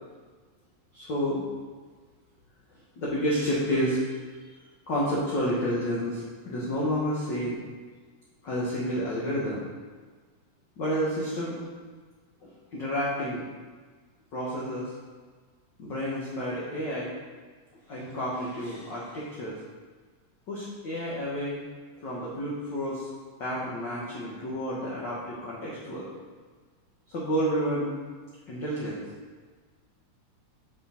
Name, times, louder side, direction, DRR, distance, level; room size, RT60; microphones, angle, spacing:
voice 1, 0.9-1.4 3.0-4.5 4.9-7.6 8.4-9.7 10.8-11.6 12.4-13.5 14.3-14.9 15.8-17.1 17.9-19.6 20.5-21.6 22.0-23.1 23.4-26.1 27.1-28.0 28.5-29.0, equal, 70° left, -6 dB, 1.0 m, -30 dB
5.8 x 4.3 x 4.2 m, 1.4 s
omnidirectional pair, 3.4 m